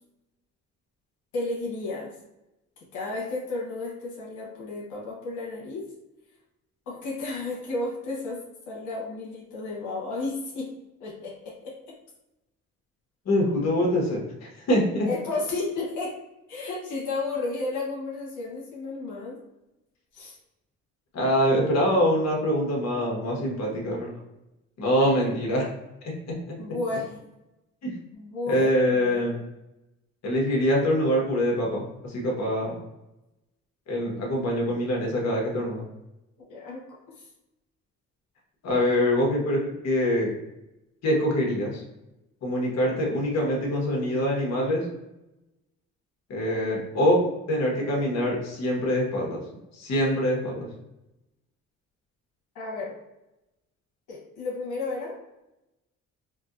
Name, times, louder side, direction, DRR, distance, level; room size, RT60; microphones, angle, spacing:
voice 1, 1.3-2.1 2.9-5.9 6.9-8.4 8.7-10.7 11.0-11.9 15.1-16.2 16.5-19.4 20.1-20.4 25.0-25.1 25.4-25.6 26.6-27.2 28.1-29.2 36.5-37.3 52.5-52.9 54.1-55.2, left 3 dB, 85° left, -4 dB, 1.2 m, -33 dB
voice 2, 13.2-15.1 21.1-24.1 24.8-25.6 26.3-26.6 27.8-27.9 28.5-29.3 30.2-32.8 33.9-35.8 38.6-40.3 41.0-41.8 42.4-44.8 46.3-47.2 47.5-49.4 49.7-50.7, equal, 60° left, -2 dB, 1.3 m, -24 dB
4.5 x 2.7 x 2.6 m, 0.95 s
cardioid pair, 90°, 30 cm